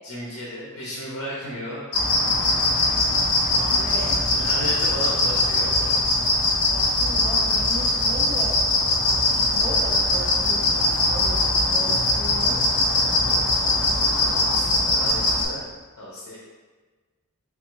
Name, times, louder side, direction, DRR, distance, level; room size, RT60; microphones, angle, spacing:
voice 1, 0.0-1.9 3.4-6.0 13.1-15.7 16.0-16.4, equal, 90° left, -5 dB, 0.8 m, -35 dB
sound 1, 1.9-15.4, left 2 dB, 65° left, 1.2 m, -21 dB
voice 2, 3.5-4.1 6.7-8.5 9.0-13.2, equal, 25° right, -3 dB, 0.6 m, -37 dB
3.9 x 3.4 x 3.0 m, 1.3 s
head